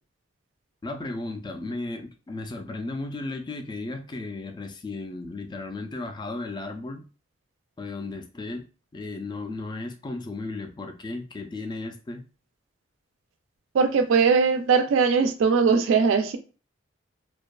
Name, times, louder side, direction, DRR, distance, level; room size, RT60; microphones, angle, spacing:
voice 1, 0.8-7.0 7.8-8.6 8.9-12.2, left 2 dB, 25° left, 0.3 m, -35 dB
voice 2, 13.7-16.4, right 5 dB, 90° right, 0.3 m, -20 dB
2.6 x 2.3 x 2.2 m
head